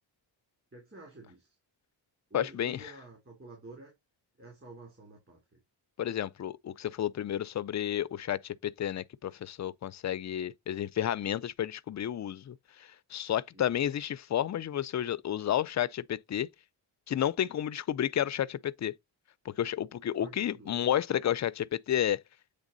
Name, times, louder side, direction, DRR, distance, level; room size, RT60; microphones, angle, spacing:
voice 1, 0.7-1.6 2.3-3.9 4.4-5.6 13.5-13.7 20.2-20.8, right 2 dB, 30° right, 3.0 m, -49 dB
voice 2, 2.3-2.8 6.0-16.5 17.1-18.9 19.6-22.2, left 10 dB, 40° left, 0.4 m, -31 dB
8.2 x 3.4 x 3.8 m
wide cardioid pair, 130°, 45 cm